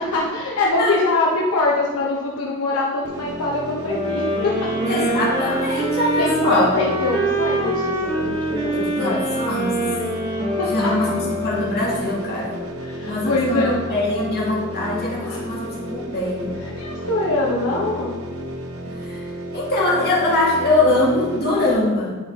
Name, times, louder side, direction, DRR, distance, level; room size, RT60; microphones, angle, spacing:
voice 1, 0.0-4.7 6.2-9.2 10.3-11.1 12.8-13.8 15.3-15.4 16.7-18.2, left 2 dB, 80° left, -3 dB, 0.9 m, -23 dB
sound 1, 3.0-21.7, equal, 70° right, 0.9 m, -32 dB
sound 2, 3.9-12.1, right 1 dB, 20° right, 1.4 m, -25 dB
voice 2, 4.9-6.7 8.7-9.8 10.7-12.6 13.1-16.5 18.9-19.2 19.5-22.2, left 2 dB, 45° left, -5 dB, 2.0 m, -22 dB
9.6 x 4.1 x 3.6 m, 1.4 s
head